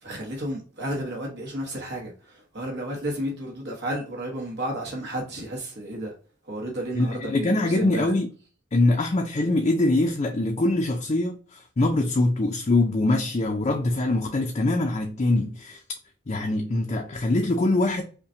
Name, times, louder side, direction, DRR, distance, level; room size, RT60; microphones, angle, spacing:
voice 1, 0.0-6.1 6.5-8.1, right 1 dB, 55° right, 1.2 m, -32 dB
voice 2, 7.0-8.3 8.7-15.8 16.3-18.0, left 2 dB, 30° left, 0.5 m, -23 dB
5.6 x 2.2 x 2.7 m
head